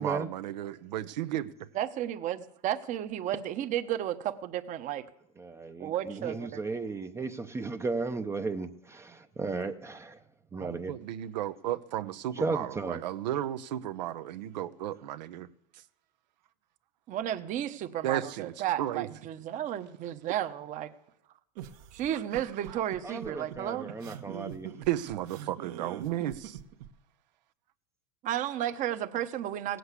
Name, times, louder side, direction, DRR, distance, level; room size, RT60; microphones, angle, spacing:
voice 1, 0.0-1.5 10.6-15.5 18.0-18.5 18.8-19.1 24.9-26.6, right 12 dB, 85° right, 0.9 m, -34 dB
voice 2, 1.7-5.1 5.8-6.6 17.1-20.9 21.9-23.9 28.2-29.8, right 11 dB, 35° right, 1.0 m, -33 dB
voice 3, 5.4-10.2 10.5-10.9 12.4-13.0 23.0-24.7, right 3 dB, 10° right, 0.6 m, -35 dB
sound 1, 21.5-26.9, right 10 dB, 65° right, 1.4 m, -43 dB
17.0 x 7.9 x 8.3 m
supercardioid pair, 135°, 21 cm